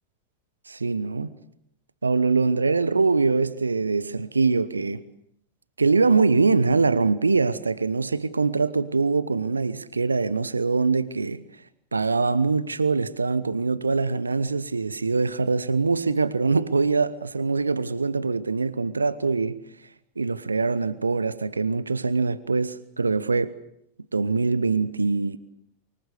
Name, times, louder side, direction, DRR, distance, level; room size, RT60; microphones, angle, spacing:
voice 1, 0.7-1.4 2.0-5.1 5.8-11.4 11.9-19.6 20.2-23.6 24.1-25.4, right 4 dB, 80° right, 0.9 m, -23 dB
24.5 x 22.0 x 8.2 m
figure-of-eight pair, 90°, 0 cm